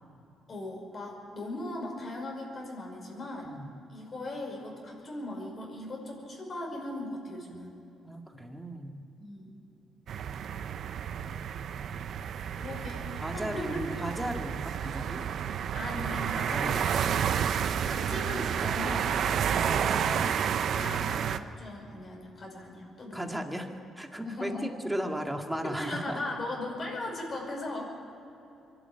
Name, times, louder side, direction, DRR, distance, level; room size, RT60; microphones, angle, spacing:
voice 1, 0.5-3.5 3.9-7.8 9.2-9.5 12.6-14.0 15.7-17.1 17.5-20.4 20.7-23.3 24.2-24.8 25.6-27.9, left 1 dB, 45° left, 0 dB, 5.7 m, -38 dB
voice 2, 8.0-9.0 13.2-15.2 16.5-16.8 23.1-26.2, equal, 5° right, 3 dB, 2.0 m, -36 dB
sound 1, 10.1-21.4, right 8 dB, 65° right, 0.7 m, -30 dB
24.0 x 12.0 x 9.0 m, 2.9 s
cardioid pair, 90°, 0 cm